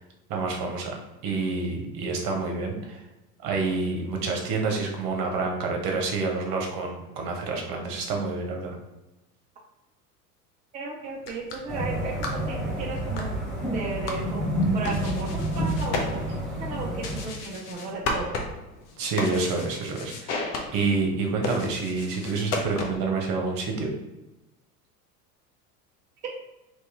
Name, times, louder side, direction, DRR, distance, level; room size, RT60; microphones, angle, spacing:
voice 1, 0.3-1.0 1.2-3.0 3.4-8.8 19.0-23.9, right 3 dB, 45° right, 2 dB, 1.0 m, -28 dB
voice 2, 10.7-13.3 13.7-16.2 16.6-18.4 26.2-26.3, right 3 dB, 15° right, -2 dB, 0.4 m, -34 dB
sound 1, 11.1-23.2, left 3 dB, 45° left, 0.8 m, -35 dB
sound 2, 11.7-17.3, right 1 dB, ahead, 1.0 m, -29 dB
3.0 x 2.9 x 3.6 m, 1.0 s
hypercardioid pair, 80°, 48 cm